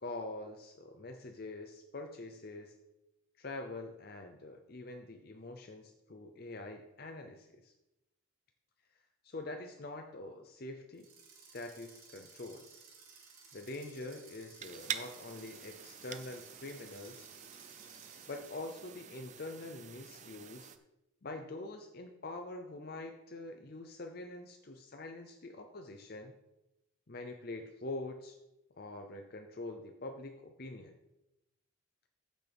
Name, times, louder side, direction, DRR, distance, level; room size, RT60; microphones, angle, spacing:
voice 1, 0.0-2.7 3.4-7.7 9.2-11.1 11.5-12.7 13.5-17.3 18.3-20.7 21.2-26.4 27.1-28.4 28.8-31.0, left 2 dB, 45° left, 5 dB, 0.6 m, -45 dB
sound 1, 10.9-18.8, right 5 dB, 85° right, 3.1 m, -57 dB
sound 2, 14.6-20.8, right 8 dB, 35° right, 0.5 m, -46 dB
15.0 x 6.2 x 3.5 m, 0.94 s
head